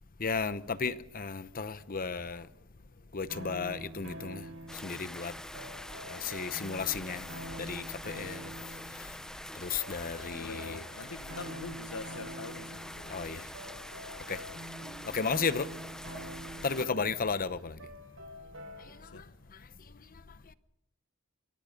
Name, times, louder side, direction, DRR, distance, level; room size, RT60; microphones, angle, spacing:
voice 1, 0.2-2.5 3.1-4.4 4.8-5.3 6.1-7.2 7.6-8.4 9.6-10.8 13.1-13.4 14.3-14.4 15.1-15.7 16.6-17.7, left 5 dB, 40° left, 0.8 m, -33 dB
sound 1, 3.3-19.2, right 1 dB, 65° right, 5.0 m, -47 dB
sound 2, 4.7-16.9, left 1 dB, 5° left, 0.8 m, -45 dB
voice 2, 10.3-12.8 13.2-13.5 16.8-17.0 19.0-19.2, left 3 dB, 90° left, 1.1 m, -44 dB
26.5 x 23.0 x 5.2 m
head